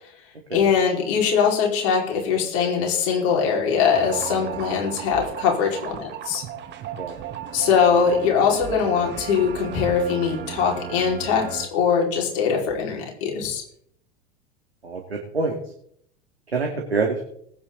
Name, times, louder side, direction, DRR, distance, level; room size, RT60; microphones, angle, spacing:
voice 1, 0.5-6.4 7.5-13.6, left 6 dB, 45° left, 0 dB, 5.1 m, -22 dB
sound 1, 3.9-11.7, right 9 dB, 35° right, 1.8 m, -35 dB
voice 2, 14.8-15.6 16.5-17.3, right 4 dB, 85° right, 0 dB, 2.3 m, -26 dB
20.0 x 9.6 x 4.1 m, 0.69 s
figure-of-eight pair, 85°, 31 cm